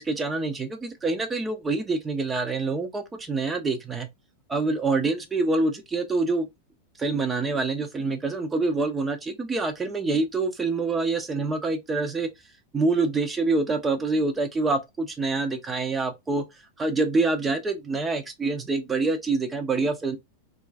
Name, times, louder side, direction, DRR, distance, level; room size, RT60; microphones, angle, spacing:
voice 1, 0.0-4.1 4.5-6.5 7.0-12.3 12.7-16.4 16.8-20.2, right 3 dB, 15° right, 0.6 m, -26 dB
3.0 x 2.4 x 2.3 m
figure-of-eight pair, 90°, 0 cm